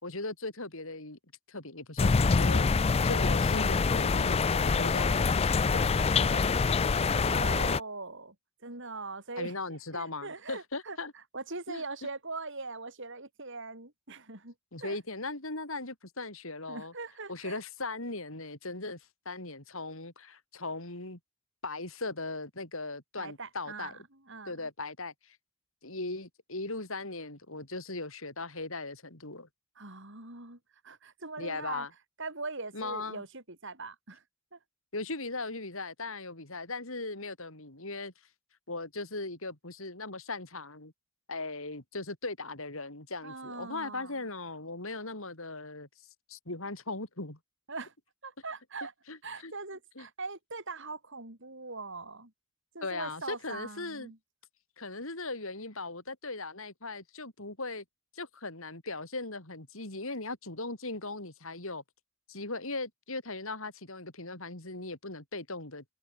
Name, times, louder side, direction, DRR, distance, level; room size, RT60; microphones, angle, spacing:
voice 1, 0.0-1.2 1.5-2.7 3.0-6.4 9.4-11.1 11.7-11.8 14.7-16.9 17.3-21.2 21.6-23.9 24.5-25.4 25.8-29.5 31.4-31.9 32.7-33.2 34.9-38.1 38.7-40.9 41.3-45.9 46.3-47.4 49.1-49.2 49.4-49.5 50.0-50.1 52.8-54.1 54.8-57.8 58.1-61.8 62.3-65.8, left 3 dB, 60° left, 4.2 m, -38 dB
sound 1, 2.0-7.8, left 4 dB, 25° left, 0.4 m, -25 dB
voice 2, 7.0-8.4 8.6-15.0 16.7-17.6 23.2-24.7 29.8-31.9 32.2-34.2 34.5-34.6 43.2-44.3 47.7-47.9 48.2-48.9 49.2-52.3 52.7-54.2, right 3 dB, 55° right, 5.9 m, -41 dB
head